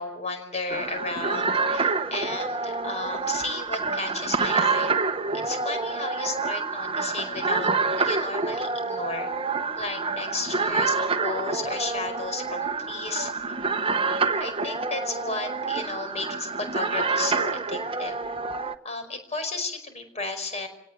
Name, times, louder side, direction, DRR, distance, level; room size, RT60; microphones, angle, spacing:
voice 1, 0.0-4.9 5.3-7.7 8.0-9.3 9.8-13.3 14.4-18.2 18.8-20.7, left 3 dB, 30° left, 7 dB, 5.2 m, -33 dB
sound 1, 0.7-18.7, right 4 dB, 25° right, 1.1 m, -27 dB
29.0 x 18.0 x 8.8 m, 0.80 s
head